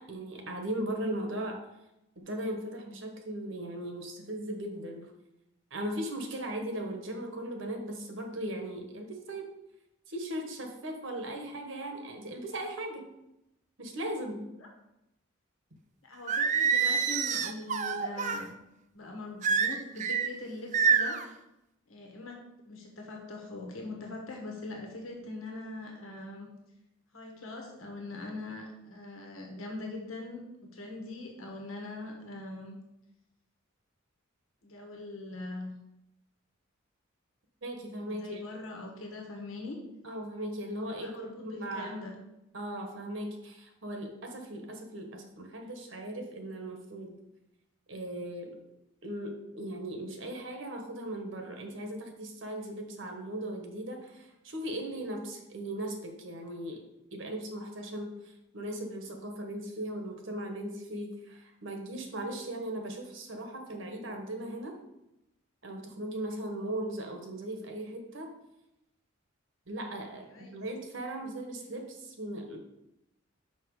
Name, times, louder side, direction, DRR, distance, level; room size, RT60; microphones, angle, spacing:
voice 1, 0.0-1.6 2.2-5.1 5.7-9.5 10.1-13.1 13.8-14.5 37.6-38.4 40.0-42.0 42.5-47.2 47.9-48.6 49.0-56.8 57.1-64.8 65.6-68.3 69.7-72.6, right 1 dB, 65° right, 3 dB, 1.3 m, -38 dB
voice 2, 16.0-18.5 18.9-21.2 21.9-22.4 22.6-26.5 27.1-32.8 34.6-35.7 38.0-39.8 41.0-42.2 70.3-70.5, left 2 dB, 85° left, 1 dB, 1.4 m, -42 dB
Singing, 16.3-18.4 19.4-20.3 20.7-21.3, right 6 dB, 35° right, 0.4 m, -27 dB
6.0 x 5.6 x 4.8 m, 0.89 s
head